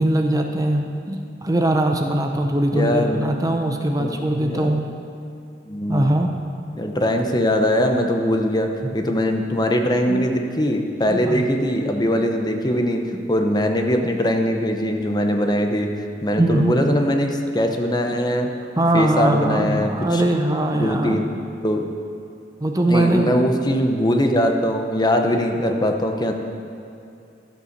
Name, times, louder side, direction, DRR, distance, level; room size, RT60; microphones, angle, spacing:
voice 1, 0.0-4.9 5.9-6.3 10.1-10.2 11.1-11.4 16.4-16.8 18.8-21.2 22.6-23.4, right 1 dB, 20° right, 3 dB, 0.7 m, -21 dB
voice 2, 2.7-3.3 4.0-4.8 5.7-6.1 6.7-8.7 8.9-13.0 13.3-15.9 16.2-18.5 18.9-20.2 20.8-21.3 21.6-21.9 22.9-26.3, equal, 25° left, 4 dB, 0.9 m, -21 dB
12.5 x 8.0 x 6.6 m, 2.7 s
head